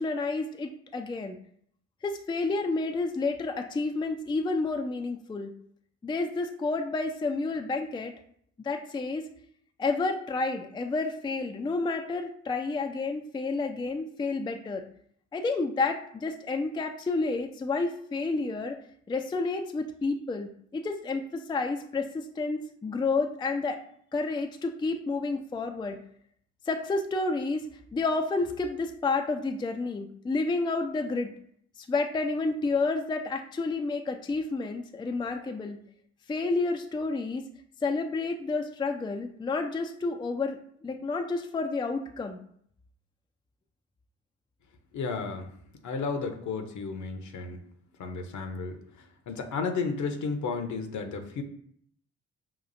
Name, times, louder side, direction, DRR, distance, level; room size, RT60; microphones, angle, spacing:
voice 1, 0.0-1.4 2.0-5.5 6.0-8.1 8.6-9.3 9.8-14.9 15.3-18.8 19.1-23.8 24.1-26.0 26.7-27.7 27.9-31.3 31.9-35.8 36.3-37.4 37.8-42.4, left 3 dB, 15° left, 5 dB, 0.4 m, -30 dB
voice 2, 44.9-45.5 45.8-47.6 48.0-48.8 49.3-51.4, left 4 dB, 55° left, 6 dB, 0.8 m, -32 dB
5.7 x 2.4 x 2.6 m, 0.64 s
hypercardioid pair, 45°, 36 cm